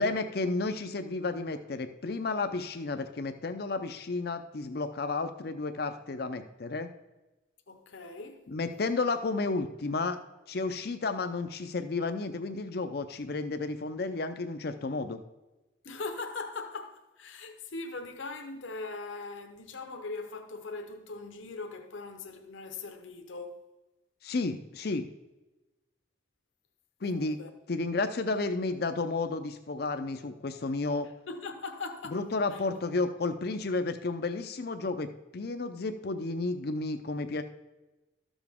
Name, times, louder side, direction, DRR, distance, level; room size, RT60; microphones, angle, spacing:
voice 1, 0.0-6.9 8.5-10.2 10.5-15.2 24.2-25.0 27.0-27.4 27.7-31.1 32.1-37.4, left 3 dB, 50° left, 0.5 m, -32 dB
voice 2, 7.7-8.4 15.8-23.7 27.0-27.5 31.3-32.2 32.5-32.6, left 3 dB, 80° left, 0.9 m, -40 dB
12.5 x 7.1 x 3.5 m
head